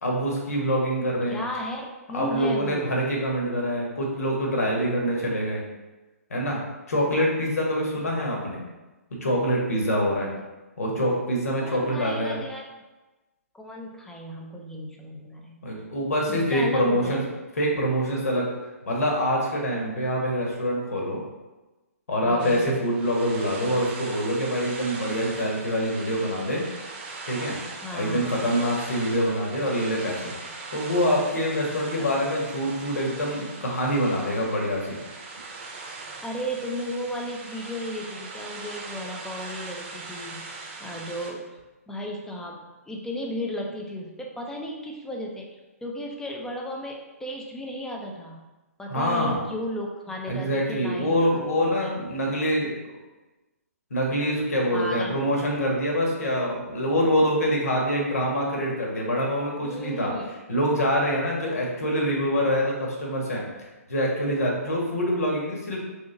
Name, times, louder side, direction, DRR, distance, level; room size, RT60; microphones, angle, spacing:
voice 1, 0.0-1.4 2.1-5.6 6.3-6.6 6.9-8.6 9.2-10.3 10.8-12.4 15.6-17.2 17.6-18.5 18.9-21.2 22.1-26.6 27.3-27.6 27.9-30.3 30.7-35.0 48.9-49.4 50.3-52.8 53.9-60.1 60.5-65.8, equal, 75° left, -2 dB, 1.5 m, -25 dB
voice 2, 1.3-3.0 11.6-12.6 13.5-15.6 16.3-17.3 22.2-22.8 27.8-28.4 32.0-32.1 36.2-40.5 40.8-41.5 41.9-45.5 45.8-48.4 48.8-51.9 54.7-55.2 59.6-60.3, left 1 dB, 5° left, 0 dB, 0.6 m, -34 dB
sound 1, 22.4-41.3, right 3 dB, 40° right, 0.8 m, -40 dB
3.8 x 3.6 x 3.9 m, 1.1 s
hypercardioid pair, 130°, 8 cm